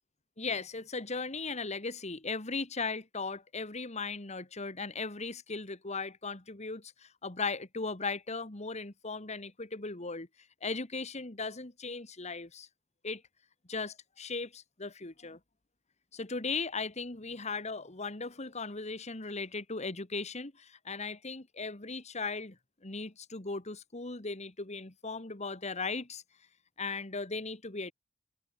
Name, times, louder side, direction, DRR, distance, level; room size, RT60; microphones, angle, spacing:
voice 1, 0.4-10.3 10.6-12.7 13.0-13.2 13.7-15.4 16.1-22.6 22.8-26.2 26.8-27.9, left 4 dB, 35° left, 1.7 m, -37 dB
head